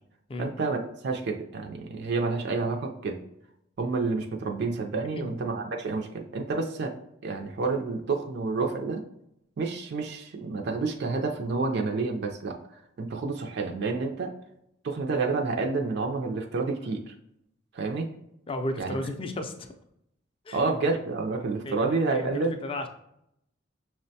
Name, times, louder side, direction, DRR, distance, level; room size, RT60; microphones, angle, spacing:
voice 1, 0.4-3.2 3.8-6.9 7.2-9.0 9.6-12.6 13.0-14.3 14.8-17.1 17.7-18.1 18.8-18.9 20.5-22.5, right 3 dB, 55° right, 3 dB, 0.4 m, -29 dB
voice 2, 18.5-19.5 20.4-20.6 21.6-22.9, left 1 dB, 25° left, 6 dB, 0.3 m, -34 dB
5.8 x 2.1 x 2.7 m, 0.79 s
head